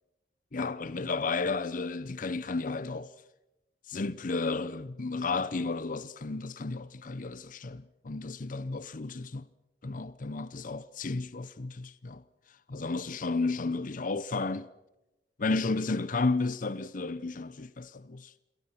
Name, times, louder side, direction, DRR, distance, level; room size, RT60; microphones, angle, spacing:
voice 1, 0.5-3.1 3.9-9.5 9.8-12.2 12.5-14.7 15.4-18.3, left 3 dB, 50° left, 0.7 m, -33 dB
28.0 x 22.0 x 5.8 m
head